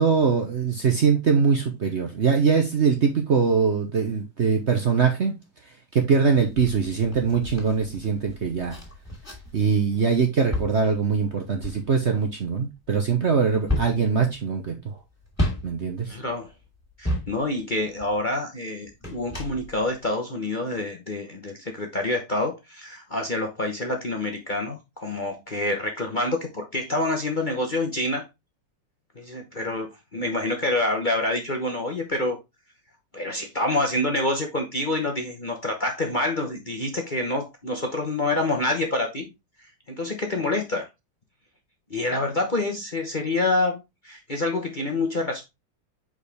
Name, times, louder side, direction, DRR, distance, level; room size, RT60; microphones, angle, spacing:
voice 1, 0.0-5.3 5.9-8.8 9.5-14.9 15.6-16.1, right 5 dB, 50° right, 0.9 m, -22 dB
sound 1, 6.3-9.7 10.1-18.2 18.9-20.1 20.7-20.8, left 1 dB, 10° left, 2.7 m, -33 dB
voice 2, 16.1-16.5 17.0-28.3 29.1-32.4 33.1-39.3 39.6-40.9 41.9-45.4, left 2 dB, 35° left, 0.9 m, -27 dB
6.3 x 5.0 x 3.4 m
omnidirectional pair, 2.0 m